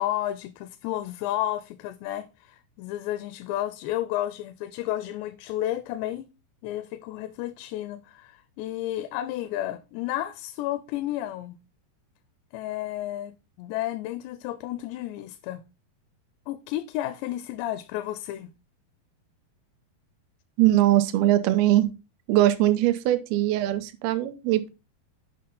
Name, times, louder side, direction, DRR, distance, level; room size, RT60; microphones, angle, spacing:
voice 1, 0.0-6.3 6.6-11.6 12.5-15.6 16.5-18.5, left 13 dB, 90° left, 2.7 m, -32 dB
voice 2, 20.6-21.9 22.3-24.7, right 14 dB, 80° right, 2.4 m, -21 dB
8.6 x 5.7 x 3.8 m
omnidirectional pair, 4.8 m